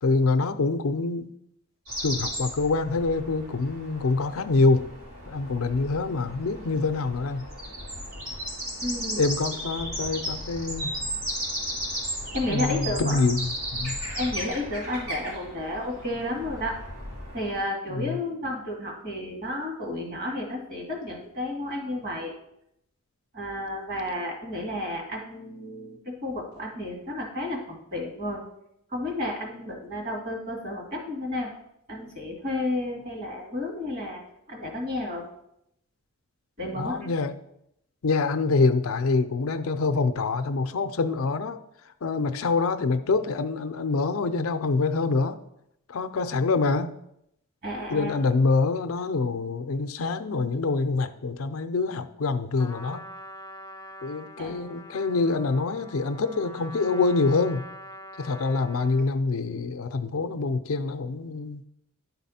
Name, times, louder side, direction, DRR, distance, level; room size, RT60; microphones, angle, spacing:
voice 1, 0.0-1.3 2.0-4.9 5.3-7.5 9.2-10.9 12.5-14.0 17.9-18.2 36.7-37.4 38.0-41.6 42.0-45.4 45.9-46.9 47.9-53.0 54.0-57.6 58.2-61.6, left 3 dB, 75° left, 10 dB, 0.5 m, -25 dB
sound 1, 1.9-17.6, equal, 75° right, 2.9 m, -35 dB
voice 2, 8.8-9.3 12.3-13.2 14.1-16.8 17.3-22.3 23.3-28.4 28.9-31.5 31.9-34.2 34.5-35.2 36.6-37.1 47.6-48.2 54.4-54.7, left 1 dB, 45° right, 0 dB, 2.0 m, -32 dB
Trumpet, 52.6-59.2, equal, 15° left, 0.4 m, -44 dB
11.0 x 4.1 x 4.2 m, 0.79 s
head